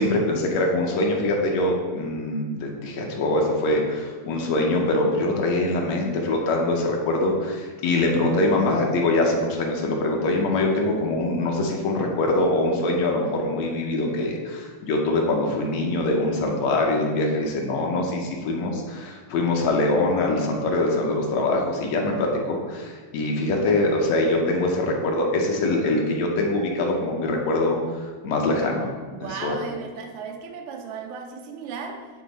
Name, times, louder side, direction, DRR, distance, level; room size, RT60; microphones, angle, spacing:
voice 1, 0.0-28.9 29.2-29.5, left 2 dB, 70° left, 0 dB, 1.9 m, -23 dB
voice 2, 29.1-32.1, right 5 dB, 85° right, 5 dB, 2.0 m, -35 dB
8.3 x 3.8 x 4.0 m, 1.5 s
omnidirectional pair, 3.3 m